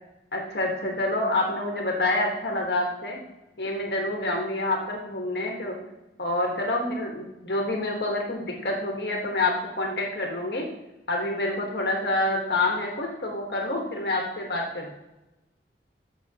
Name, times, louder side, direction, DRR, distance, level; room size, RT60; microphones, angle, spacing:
voice 1, 0.3-3.2 3.6-5.8 6.2-10.6 11.1-14.9, left 2 dB, 65° left, 0 dB, 1.5 m, -27 dB
13.5 x 5.8 x 2.9 m, 0.99 s
head